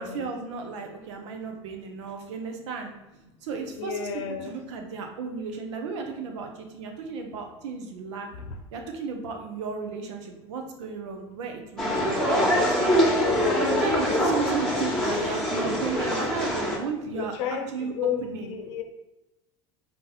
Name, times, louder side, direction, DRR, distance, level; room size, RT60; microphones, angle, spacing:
voice 1, 0.0-2.9 3.4-8.3 8.7-13.2 13.6-18.5, right 5 dB, 80° right, 3 dB, 0.8 m, -34 dB
voice 2, 3.8-4.5 13.1-13.8 17.1-17.7 18.0-18.8, left 8 dB, 75° left, 5 dB, 0.7 m, -31 dB
sound 1, 11.8-16.8, equal, 5° left, 1.2 m, -24 dB
4.1 x 2.7 x 4.0 m, 0.97 s
supercardioid pair, 100°, 15 cm